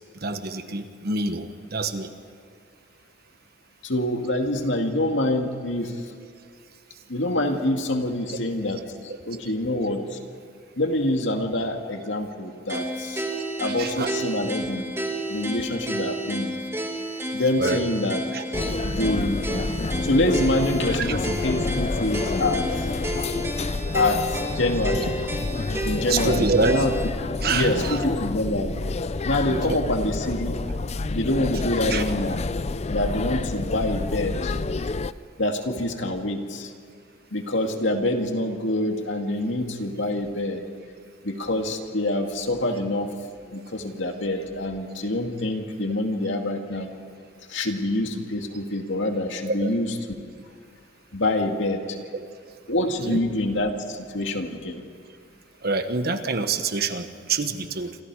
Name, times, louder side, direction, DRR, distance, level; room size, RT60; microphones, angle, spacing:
voice 1, 0.2-2.1 8.3-8.4 12.7-13.0 13.3-14.1 17.6-17.8 18.3-18.4 21.0-21.2 26.1-26.9 27.4-27.7 29.5-29.8 31.9-32.0 49.5-49.7 52.1-52.2 53.1-53.2 55.6-58.0, right 3 dB, 55° right, 8 dB, 1.4 m, -27 dB
voice 2, 3.8-5.9 7.1-8.8 9.3-10.2 10.8-13.2 13.6-14.9 15.3-16.6 17.3-18.2 18.8-19.4 20.0-22.6 23.9-25.2 25.8-26.9 27.5-28.8 29.3-30.6 31.1-32.4 32.9-34.5 35.4-36.7 37.3-40.6 41.2-43.1 43.5-46.9 47.5-50.0 51.1-52.0 52.7-54.8, left 1 dB, 70° left, 4 dB, 2.3 m, -26 dB
sound 1, 12.7-27.1, equal, 15° right, 1.8 m, -31 dB
sound 2, 18.5-35.1, left 3 dB, 35° left, 0.5 m, -29 dB
28.5 x 25.5 x 4.9 m, 2.1 s
head